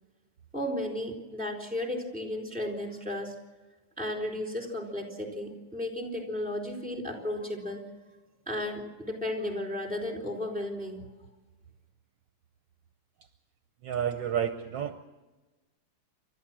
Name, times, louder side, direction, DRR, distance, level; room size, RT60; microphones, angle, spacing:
voice 1, 0.5-3.3 4.0-7.9 8.5-11.0, left 1 dB, 5° right, 1 dB, 4.0 m, -34 dB
voice 2, 13.8-15.0, right 9 dB, 65° right, 8 dB, 1.4 m, -30 dB
29.0 x 13.0 x 7.5 m, 1.2 s
omnidirectional pair, 2.2 m